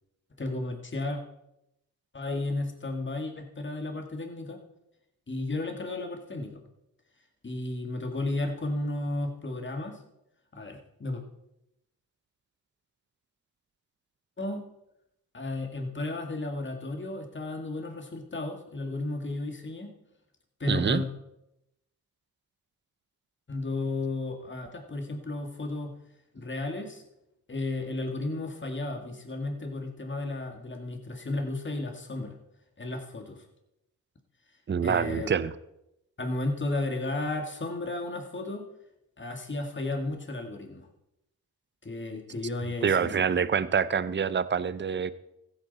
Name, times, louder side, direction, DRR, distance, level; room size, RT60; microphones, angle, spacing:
voice 1, 0.4-1.2 2.1-4.6 5.3-6.6 7.4-10.0 10.5-11.2 14.4-14.6 15.3-19.9 20.6-21.1 23.5-25.9 26.3-27.0 27.5-32.4 32.8-33.4 34.8-35.3 36.2-38.6 39.2-40.9 41.8-43.2, left 2 dB, 30° left, 4 dB, 2.0 m, -33 dB
voice 2, 20.7-21.0 34.7-35.5 42.8-45.1, right 6 dB, 30° right, 15 dB, 0.6 m, -26 dB
15.0 x 8.9 x 4.1 m, 0.85 s
cardioid pair, 75°, 38 cm